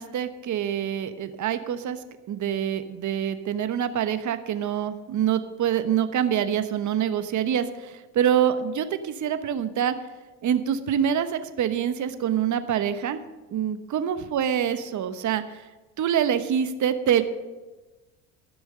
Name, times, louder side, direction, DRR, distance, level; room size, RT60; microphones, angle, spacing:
voice 1, 0.0-2.0 2.3-10.0 10.4-13.2 13.5-15.4 16.0-17.2, right 9 dB, 45° right, 10 dB, 1.1 m, -25 dB
14.0 x 6.2 x 6.6 m, 1.2 s
hypercardioid pair, 75°, 40 cm